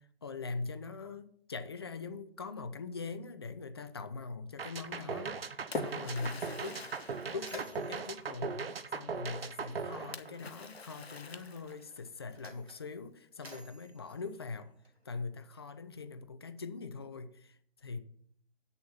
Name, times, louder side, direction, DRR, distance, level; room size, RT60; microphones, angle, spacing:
voice 1, 0.0-6.8 7.3-14.7 15.0-18.0, left 4 dB, 25° left, 11 dB, 0.4 m, -42 dB
sound 1, 4.6-10.8, right 5 dB, 70° right, 0.8 m, -39 dB
Splash splatter, 5.1-8.3 10.1-12.1, left 4 dB, 80° left, 0.8 m, -45 dB
Mechanisms, 7.4-9.7 10.7-10.8 11.6-15.2, equal, 85° right, 2.3 m, -53 dB
8.7 x 6.7 x 5.6 m, 0.63 s
figure-of-eight pair, 135°, 31 cm